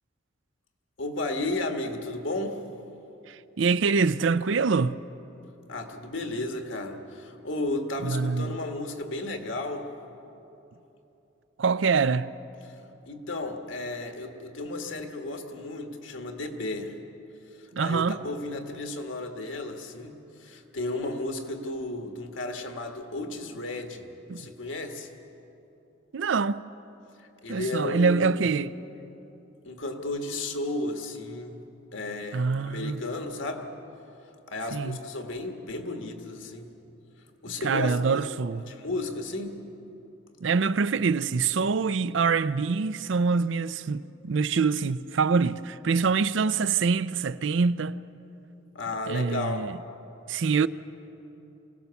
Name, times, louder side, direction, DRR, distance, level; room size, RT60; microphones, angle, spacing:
voice 1, 1.0-2.6 5.7-9.9 13.0-17.0 17.8-25.1 27.4-28.4 29.6-31.6 31.9-33.7 34.5-36.8 37.4-38.2 38.7-39.6 48.7-49.7, left 2 dB, 70° left, 1.7 m, -33 dB
voice 2, 3.3-5.0 8.0-8.6 11.6-12.3 17.7-18.2 24.3-24.4 26.1-26.6 27.5-28.7 32.3-33.0 34.7-35.0 37.6-38.7 40.4-48.0 49.1-49.8 50.3-50.7, right 5 dB, 65° right, 0.5 m, -25 dB
24.5 x 17.5 x 7.0 m
head